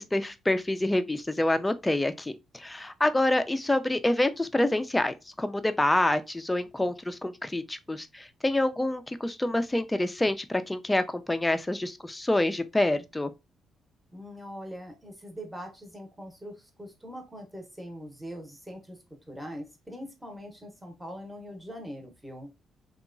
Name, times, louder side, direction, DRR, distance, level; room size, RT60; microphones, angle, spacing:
voice 1, 0.0-13.3, left 1 dB, 10° left, 0.3 m, -27 dB
voice 2, 14.1-19.0 19.3-22.5, equal, 5° right, 0.8 m, -42 dB
2.8 x 2.2 x 2.4 m
cardioid pair, 90°, 0 cm